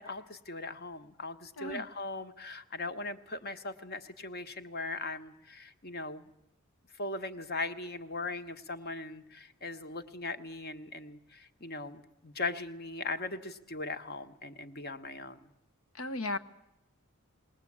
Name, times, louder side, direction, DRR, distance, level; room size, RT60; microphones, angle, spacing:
voice 1, 0.0-6.2 7.0-15.4, left 3 dB, 50° left, 9 dB, 1.3 m, -39 dB
voice 2, 15.9-16.4, left 2 dB, 75° left, 11 dB, 1.1 m, -35 dB
21.5 x 19.0 x 8.7 m, 0.87 s
head